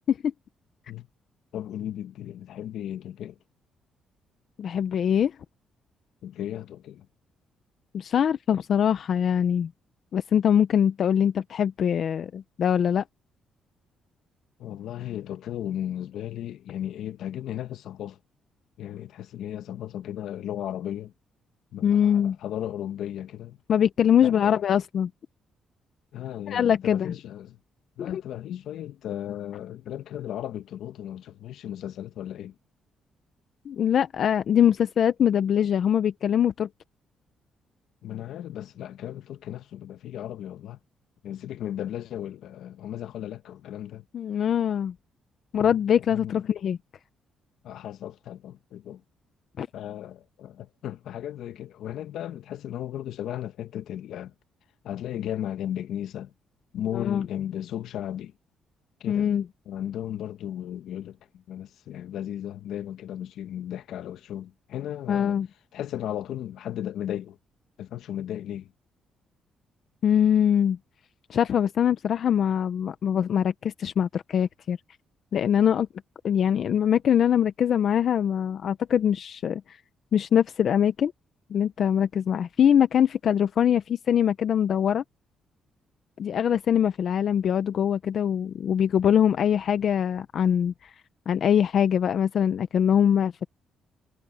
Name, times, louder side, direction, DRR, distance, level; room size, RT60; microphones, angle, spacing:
voice 1, 1.5-3.4 6.2-7.1 14.6-18.2 18.8-21.1 21.7-23.6 24.2-24.6 26.1-27.6 28.0-32.5 38.0-40.8 41.2-44.0 45.7-45.8 46.1-46.4 47.6-49.0 49.7-54.3 54.8-56.3 56.7-58.3 59.0-59.4 59.6-65.4 65.7-67.4 67.8-68.7, left 11 dB, 80° left, 1.4 m, -35 dB
voice 2, 4.6-5.3 7.9-9.7 10.1-13.0 21.8-22.4 23.7-25.1 26.5-27.1 28.0-28.2 33.7-36.7 44.1-44.9 45.5-46.8 49.6-49.7 56.9-57.2 59.1-59.4 65.1-65.5 70.0-70.8 71.3-74.8 75.3-75.9 76.2-79.8 80.1-81.1 81.5-85.0 86.2-90.9 91.3-93.5, left 9 dB, 60° left, 0.8 m, -23 dB
cardioid pair, 90°, 0 cm